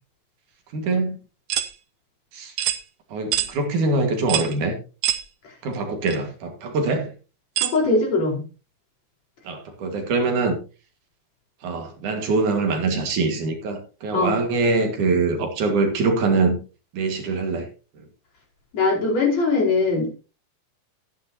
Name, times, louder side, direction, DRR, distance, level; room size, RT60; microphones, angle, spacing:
voice 1, 0.7-1.2 2.3-2.5 3.1-4.7 5.6-7.1 9.4-10.6 11.6-16.6 16.9-17.7, right 3 dB, 70° right, 4 dB, 3.3 m, -23 dB
sound 1, 1.5-1.7 2.6-2.8 3.3-3.5 4.3-4.5 5.0-5.2 6.1-6.2 7.6-7.8, right 13 dB, 85° right, 2.5 m, -24 dB
voice 2, 7.6-8.4 14.1-14.4 18.7-20.1, left 3 dB, 55° left, -3 dB, 5.8 m, -21 dB
14.5 x 10.0 x 2.9 m, 0.33 s
omnidirectional pair, 3.7 m